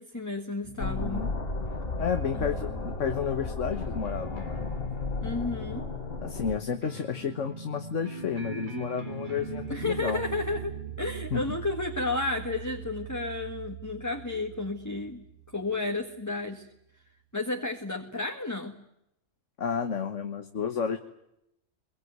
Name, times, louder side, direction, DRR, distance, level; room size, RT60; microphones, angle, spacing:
voice 1, 0.0-1.3 2.3-2.4 5.2-5.9 9.7-15.2 15.5-16.7 17.3-18.7, left 2 dB, 15° left, 3 dB, 1.7 m, -32 dB
sound 1, 0.6-16.0, right 2 dB, 40° right, 2.3 m, -41 dB
voice 2, 0.8-1.3 2.0-4.7 6.2-10.2 11.3-11.4 19.6-21.0, left 6 dB, 85° left, 7 dB, 1.7 m, -31 dB
sound 2, 0.8-6.6, left 2 dB, 50° left, 2.0 m, -34 dB
24.0 x 23.0 x 9.5 m, 0.80 s
omnidirectional pair, 1.2 m